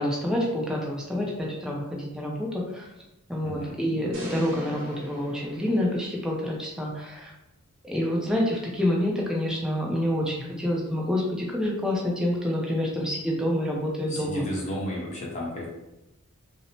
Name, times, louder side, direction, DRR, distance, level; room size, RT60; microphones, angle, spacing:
voice 1, 0.0-2.9 3.3-7.3 7.8-14.4, left 1 dB, 5° right, -2 dB, 0.4 m, -27 dB
voice 2, 3.4-3.7 14.1-15.7, equal, 35° left, -4 dB, 0.8 m, -33 dB
sound 1, 4.1-6.4, equal, 65° right, 1.1 m, -41 dB
2.7 x 2.0 x 2.8 m, 0.92 s
head